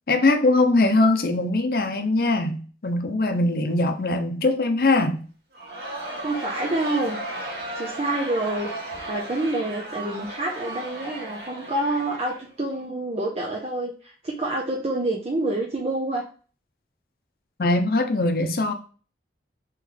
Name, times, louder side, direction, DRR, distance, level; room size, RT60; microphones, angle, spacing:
voice 1, 0.1-5.2 17.6-18.7, left 2 dB, 55° left, 0.6 m, -21 dB
Crowd, 5.5-12.8, right 2 dB, 65° right, 1.5 m, -35 dB
voice 2, 6.2-7.2 7.7-8.7 9.1-16.2, right 2 dB, 35° right, 0.6 m, -27 dB
3.1 x 3.1 x 3.8 m
head